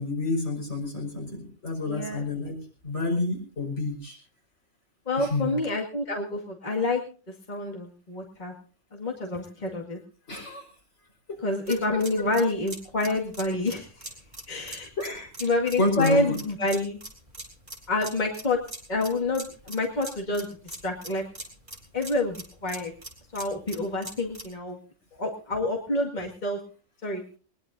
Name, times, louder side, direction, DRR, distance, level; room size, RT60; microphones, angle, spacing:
voice 1, 0.0-2.6 2.8-4.2 5.2-5.6 10.3-10.7 11.3-11.4 11.7-12.0 15.0-15.3 15.8-16.4, left 2 dB, 70° left, 0 dB, 5.6 m, -29 dB
voice 2, 1.8-2.3 5.1-7.0 7.5-8.5 8.9-10.0 11.4-13.9 14.5-14.9 15.4-17.0 17.9-18.6 18.9-21.2 21.9-22.9 23.3-24.8 25.2-26.6 27.0-27.2, left 2 dB, 40° left, 0 dB, 2.2 m, -28 dB
sound 1, 11.7-24.5, right 1 dB, 40° right, 3.4 m, -42 dB
20.5 x 20.5 x 2.6 m, 0.36 s
omnidirectional pair, 1.2 m